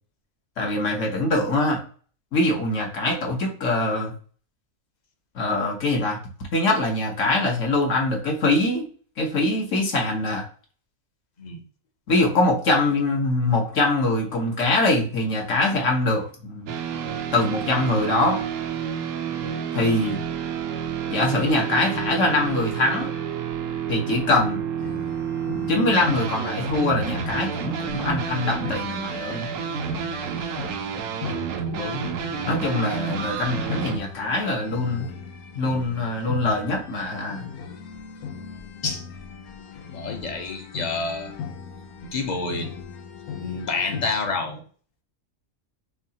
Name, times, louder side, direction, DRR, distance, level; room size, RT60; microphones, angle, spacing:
voice 1, 0.6-1.8 2.3-4.1 5.3-6.2 6.5-8.8 9.2-10.4 12.1-16.7 17.3-18.4 19.7-20.2 21.1-23.1 23.9-24.6 25.7-29.5 32.5-35.1 35.5-37.5, left 2 dB, 60° left, 0 dB, 1.3 m, -23 dB
sound 1, 16.7-34.0, right 8 dB, 70° right, 0.9 m, -30 dB
sound 2, 24.8-44.1, left 6 dB, 85° left, 1.1 m, -38 dB
voice 2, 31.2-32.1 38.8-39.0 39.9-41.3 42.0-42.8 43.4-44.6, left 3 dB, 40° left, 3 dB, 0.7 m, -29 dB
6.0 x 2.4 x 2.8 m, 0.42 s
omnidirectional pair, 1.5 m